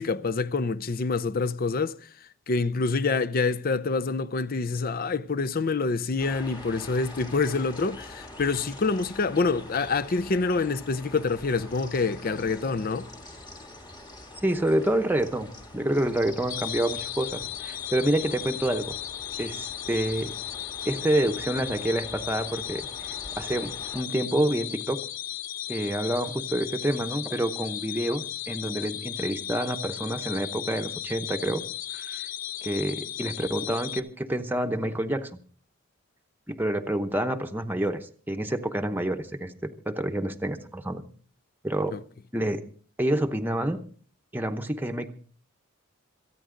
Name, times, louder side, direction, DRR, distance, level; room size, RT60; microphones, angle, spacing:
voice 1, 0.0-13.1 41.9-42.0, left 4 dB, 45° left, 0.5 m, -27 dB
sound 1, 6.2-24.0, left 1 dB, 20° left, 1.6 m, -45 dB
voice 2, 14.4-15.5 15.7-19.0 19.4-20.3 20.9-22.9 23.4-25.0 25.7-31.6 31.9-32.2 32.6-35.3 36.5-41.0 41.6-42.0 42.3-42.6 43.0-43.8 44.3-45.1, right 1 dB, 10° right, 0.9 m, -28 dB
sound 2, 16.5-34.0, left 11 dB, 70° left, 0.8 m, -36 dB
27.0 x 9.2 x 3.8 m
head